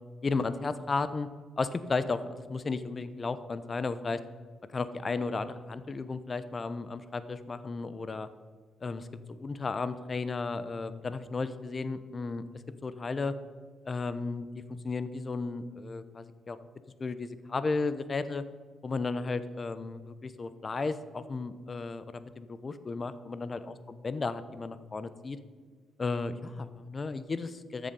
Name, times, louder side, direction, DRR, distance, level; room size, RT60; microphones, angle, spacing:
voice 1, 0.2-1.3 1.6-4.2 4.7-8.3 8.8-12.4 12.8-13.3 13.8-14.5 14.8-16.6 17.0-18.4 18.8-25.4 26.0-27.9, left 3 dB, 35° left, 13 dB, 0.8 m, -34 dB
13.5 x 7.2 x 5.3 m, 1.5 s
cardioid pair, 90°, 0 cm